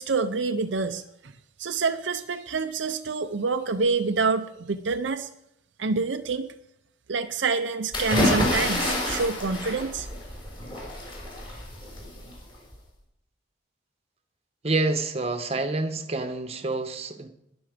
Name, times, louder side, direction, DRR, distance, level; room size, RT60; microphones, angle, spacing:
voice 1, 0.0-1.3 1.6-5.3 5.8-6.5 7.1-10.1, right 4 dB, 70° right, 7 dB, 0.6 m, -27 dB
sound 1, 7.9-12.7, left 1 dB, 25° left, 4.9 m, -28 dB
voice 2, 14.6-17.3, right 2 dB, 30° right, 8 dB, 1.1 m, -27 dB
20.5 x 7.1 x 5.1 m, 0.78 s
head